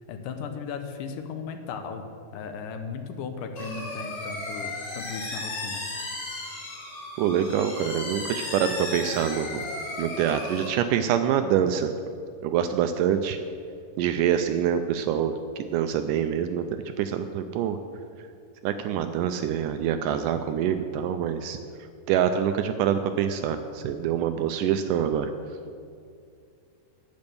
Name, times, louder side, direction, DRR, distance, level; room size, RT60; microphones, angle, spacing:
voice 1, 0.1-2.1 2.3-5.8, left 5 dB, 75° left, 6 dB, 2.3 m, -36 dB
sound 1, 3.6-10.7, left 2 dB, 45° left, 3.2 m, -35 dB
voice 2, 7.2-9.6 10.0-11.9 12.4-13.4 14.0-16.7 17.0-17.8 18.6-21.6 22.1-25.3, right 9 dB, 80° right, 8 dB, 2.0 m, -25 dB
10.5 x 9.2 x 7.0 m, 2.3 s
omnidirectional pair, 4.1 m